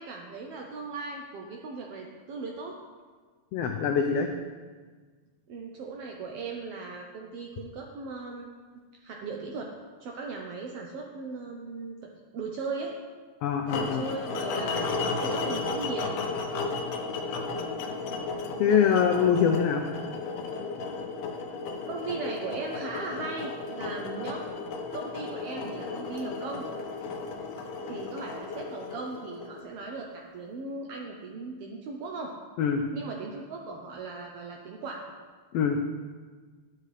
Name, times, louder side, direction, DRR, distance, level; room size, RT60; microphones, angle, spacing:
voice 1, 0.0-2.7 5.5-8.5 9.0-9.7 10.0-12.9 13.7-16.1 18.7-19.2 21.9-24.4 24.9-26.7 27.9-32.3 32.9-35.0, right 4 dB, 75° right, 1 dB, 1.4 m, -38 dB
voice 2, 3.5-4.3 13.4-14.0 18.6-19.8 32.6-32.8 35.5-35.8, left 7 dB, 90° left, 4 dB, 1.3 m, -24 dB
sound 1, 13.7-29.8, left 4 dB, 75° left, 1.9 m, -34 dB
11.5 x 6.6 x 3.3 m, 1.5 s
omnidirectional pair, 3.4 m